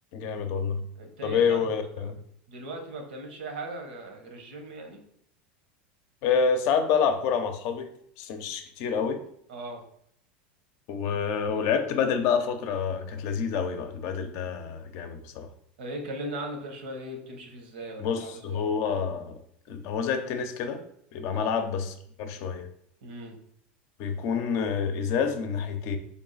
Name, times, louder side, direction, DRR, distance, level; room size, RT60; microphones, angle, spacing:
voice 1, 0.1-0.9 1.2-2.2 6.2-9.2 10.9-15.5 18.0-19.4 19.7-20.8 21.1-22.7 24.0-26.0, left 6 dB, 55° left, 0.6 m, -28 dB
voice 2, 1.0-2.1 2.5-5.0 9.5-9.8 15.8-18.7 21.3-21.6 23.0-23.4, right 1 dB, 80° right, 0.9 m, -38 dB
3.5 x 2.4 x 3.9 m
hypercardioid pair, 100°, 5 cm